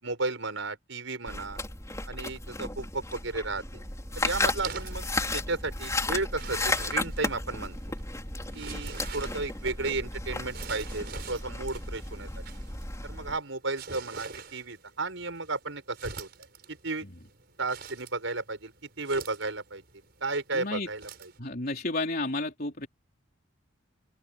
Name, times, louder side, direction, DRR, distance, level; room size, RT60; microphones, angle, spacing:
voice 1, 0.0-1.6 2.1-3.6 4.2-5.0 5.3-7.8 8.5-12.3 13.0-16.3 16.7-17.1 17.6-19.8 20.2-21.3, right 3 dB, 65° right, 5.9 m, -33 dB
sound 1, 1.3-13.4, left 2 dB, 15° left, 4.7 m, -34 dB
sound 2, 3.6-21.4, right 5 dB, 50° right, 5.2 m, -46 dB
voice 2, 20.5-20.9 21.4-22.9, left 2 dB, 45° left, 3.9 m, -31 dB
open air
head